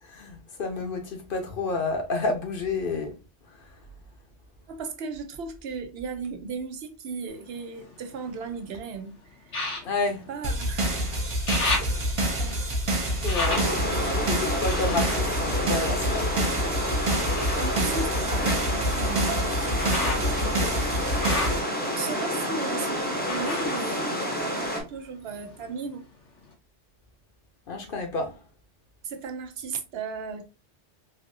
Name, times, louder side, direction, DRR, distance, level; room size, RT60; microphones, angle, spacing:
voice 1, 0.0-3.2 3.6-3.7 9.8-10.2 13.2-16.4 27.7-28.4, left 3 dB, 55° left, 0.9 m, -30 dB
voice 2, 4.7-9.7 10.3-11.0 11.6-11.9 12.2-12.6 17.5-19.4 21.7-26.1 29.0-30.4, right 5 dB, 65° right, 0.8 m, -36 dB
sound 1, 7.3-8.7 9.5-11.0 11.2-16.4 17.1-24.9 25.2-26.0 26.5-26.6, left 2 dB, 85° left, 1.3 m, -35 dB
sound 2, 10.4-21.6, right 1 dB, 35° right, 0.7 m, -27 dB
sound 3, 13.4-24.8, equal, 10° left, 0.7 m, -29 dB
3.3 x 2.6 x 2.6 m
omnidirectional pair, 1.2 m